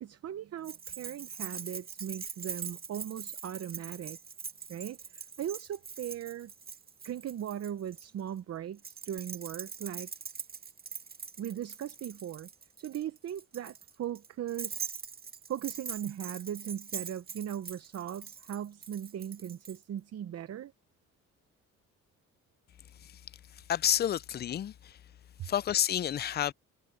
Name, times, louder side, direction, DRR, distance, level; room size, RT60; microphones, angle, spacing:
voice 1, 0.0-4.2 4.7-6.5 7.0-10.1 11.4-12.5 12.8-15.0 15.5-20.7 25.4-25.5, right 10 dB, 55° right, 0.9 m, -38 dB
Keys jangling, 0.6-8.1 8.8-19.8, right 6 dB, 30° right, 1.7 m, -43 dB
voice 2, 23.5-25.0 25.4-26.5, left 10 dB, 35° left, 0.4 m, -30 dB
cardioid pair, 90°, 30 cm